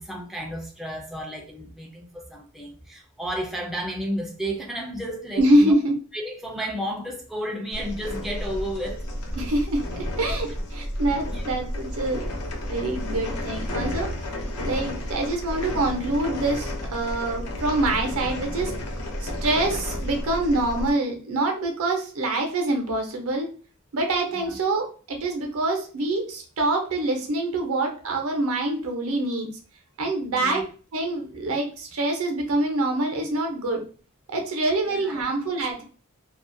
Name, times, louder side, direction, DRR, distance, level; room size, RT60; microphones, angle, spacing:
voice 1, 0.0-5.7 6.1-9.0 11.3-11.5 14.3-14.4 19.2-19.3 24.3-24.6 30.3-30.6 34.9-35.2, equal, ahead, -1 dB, 0.3 m, -32 dB
voice 2, 5.4-5.9 9.4-12.2 12.7-14.1 14.5-18.7 19.2-23.5 23.9-29.5 30.0-30.6 30.9-33.8 34.3-35.8, right 2 dB, 70° right, 3 dB, 0.6 m, -25 dB
sound 1, 7.7-20.9, left 1 dB, 80° left, 0.6 m, -31 dB
2.3 x 2.1 x 2.5 m, 0.39 s
head